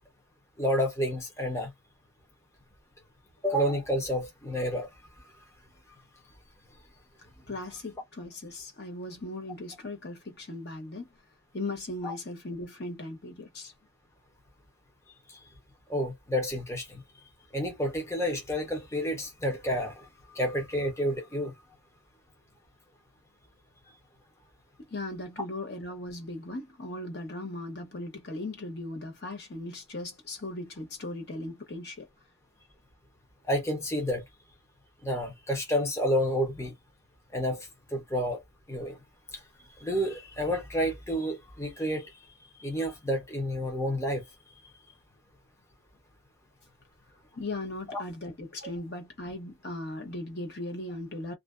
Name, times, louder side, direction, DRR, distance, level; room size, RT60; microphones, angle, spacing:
voice 1, 0.6-1.7 3.4-4.9 12.0-12.1 15.3-15.5 15.9-17.0 17.5-20.1 20.3-21.5 33.5-34.2 35.0-36.7 37.3-38.4 38.7-39.0 39.8-42.2 42.6-44.2 47.9-48.0, equal, 15° left, 0.6 m, -30 dB
voice 2, 7.5-11.1 11.5-13.7 24.9-32.1 47.4-51.3, left 2 dB, 55° left, 0.9 m, -38 dB
2.5 x 2.2 x 2.4 m
head